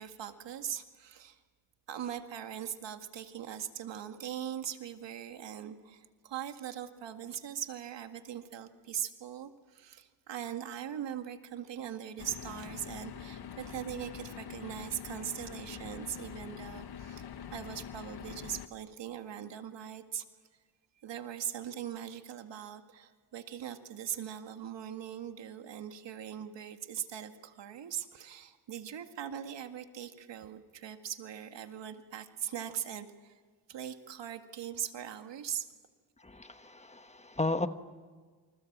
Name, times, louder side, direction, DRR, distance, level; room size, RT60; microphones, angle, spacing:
voice 1, 0.0-1.4 1.9-17.2 17.5-20.2 21.0-33.3 33.7-35.7, right 9 dB, 80° right, 6 dB, 2.0 m, -41 dB
sound 1, 12.2-18.7, left 8 dB, 60° left, 1.4 m, -45 dB
voice 2, 36.2-37.7, left 2 dB, 15° left, 9 dB, 1.2 m, -34 dB
28.0 x 26.0 x 7.4 m, 1.5 s
cardioid pair, 95°, 43 cm